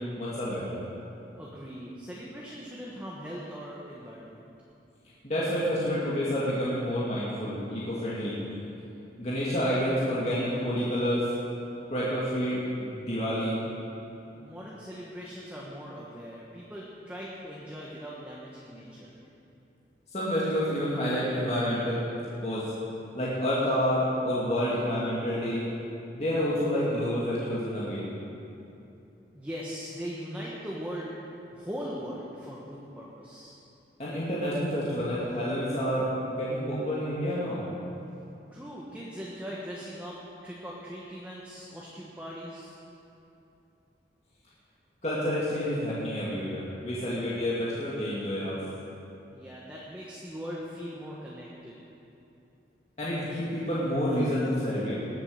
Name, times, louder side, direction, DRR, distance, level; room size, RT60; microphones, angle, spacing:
voice 1, 0.2-0.8 5.2-8.3 9.2-11.3 11.9-13.6 20.1-22.0 22.4-22.7 23.2-25.6 26.1-28.0 34.0-37.7 45.0-48.6 53.0-55.0, equal, 40° left, -9 dB, 2.3 m, -29 dB
voice 2, 1.3-4.4 14.2-19.2 29.3-31.1 31.5-33.6 38.5-40.2 40.4-42.8 49.3-51.8, equal, 10° right, -5 dB, 1.3 m, -40 dB
19.5 x 7.5 x 6.6 m, 2.8 s
head